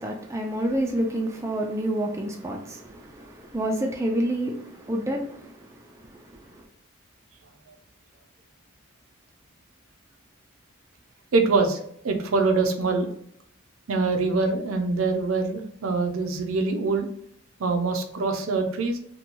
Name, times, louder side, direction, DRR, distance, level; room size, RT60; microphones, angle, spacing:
voice 1, 0.0-6.6, right 1 dB, 15° right, 0.3 m, -29 dB
voice 2, 11.3-11.8 12.0-13.1 13.9-17.1 17.6-19.0, right 3 dB, 75° right, 0.5 m, -24 dB
2.9 x 2.2 x 2.5 m
head